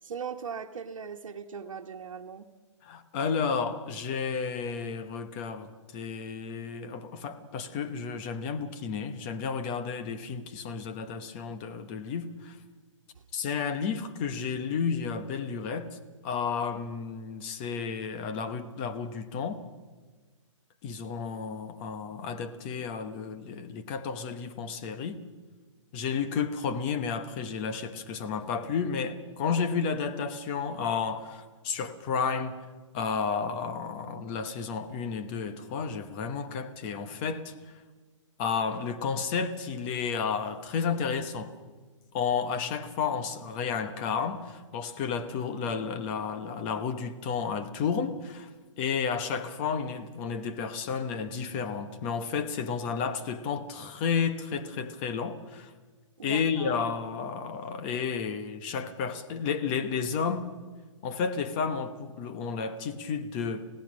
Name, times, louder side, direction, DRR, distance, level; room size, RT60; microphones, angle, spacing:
voice 1, 0.0-2.5 56.2-56.8, right 6 dB, 85° right, 1.3 m, -39 dB
voice 2, 2.8-12.6 13.3-16.0 16.2-19.6 20.8-25.2 25.9-32.6 32.9-37.5 38.4-41.5 42.1-48.5 48.8-55.7 56.2-60.5 61.0-63.7, left 6 dB, 20° left, 0.9 m, -32 dB
26.0 x 16.5 x 6.3 m
hypercardioid pair, 170°, 16 cm